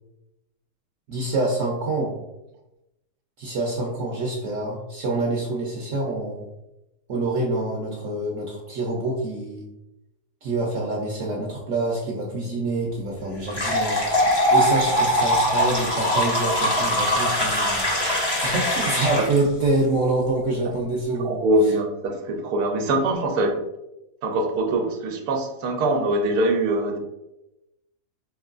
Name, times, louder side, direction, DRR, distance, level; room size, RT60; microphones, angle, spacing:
voice 1, 1.1-2.2 3.4-6.5 7.1-9.7 10.4-21.5, right 2 dB, 65° right, -1 dB, 0.9 m, -26 dB
sound 1, 13.5-19.4, equal, 25° left, 0.5 m, -22 dB
voice 2, 21.2-23.6 24.2-27.0, right 1 dB, 85° right, 4 dB, 1.2 m, -23 dB
4.5 x 2.9 x 2.4 m, 0.93 s
omnidirectional pair, 1.7 m